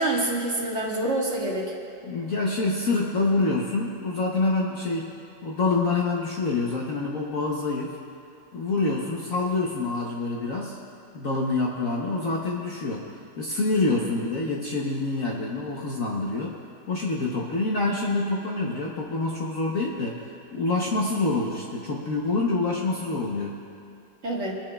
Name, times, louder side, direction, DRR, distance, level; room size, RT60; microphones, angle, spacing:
voice 1, 0.0-1.7 24.2-24.6, right 2 dB, 40° right, -3 dB, 1.7 m, -26 dB
voice 2, 2.0-5.1 5.4-8.0 8.5-10.8 11.1-13.1 13.4-16.6 16.9-23.5, left 3 dB, 55° left, -2 dB, 1.2 m, -26 dB
24.0 x 10.0 x 2.3 m, 2.6 s
omnidirectional pair, 2.0 m